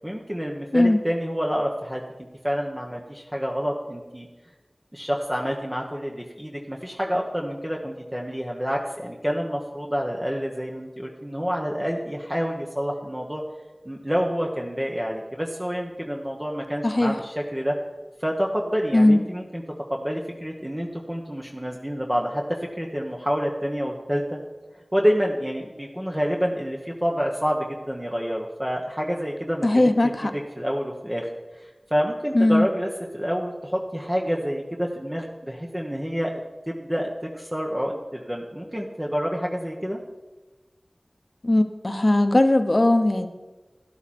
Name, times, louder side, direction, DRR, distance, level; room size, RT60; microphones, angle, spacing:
voice 1, 0.0-2.0 2.4-4.3 4.9-13.4 13.8-17.8 18.2-19.6 19.9-22.5 22.8-24.4 24.9-29.9 30.2-31.3 31.6-36.3 36.7-40.0, equal, 15° right, -1 dB, 1.3 m, -28 dB
voice 2, 16.8-17.2 18.9-19.2 29.6-30.3 32.3-32.7 41.4-43.3, left 1 dB, 45° left, 8 dB, 1.0 m, -19 dB
12.5 x 12.0 x 4.4 m, 1.2 s
wide cardioid pair, 50°, 0 cm